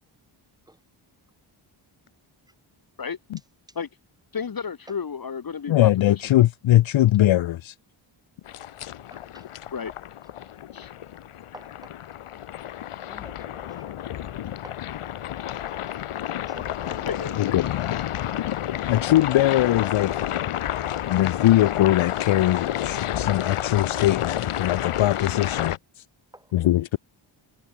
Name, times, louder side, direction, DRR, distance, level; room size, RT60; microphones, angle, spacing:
voice 1, 4.3-6.2 9.7-9.9 10.7-10.9 17.1-17.3, left 6 dB, 45° left, 1.8 m, -32 dB
voice 2, 5.7-7.7 17.4-18.0 18.9-20.2 21.1-25.8 26.5-27.0, left 14 dB, 70° left, 0.6 m, -21 dB
sound 1, 8.5-25.8, left 11 dB, 85° left, 1.4 m, -30 dB
voice 3, 9.1-9.5 11.5-12.0 13.1-14.9 15.4-16.1 16.5-18.6 19.8-19.9 26.3-26.6, right 1 dB, 10° right, 4.5 m, -50 dB
wide cardioid pair, 100°, 50 cm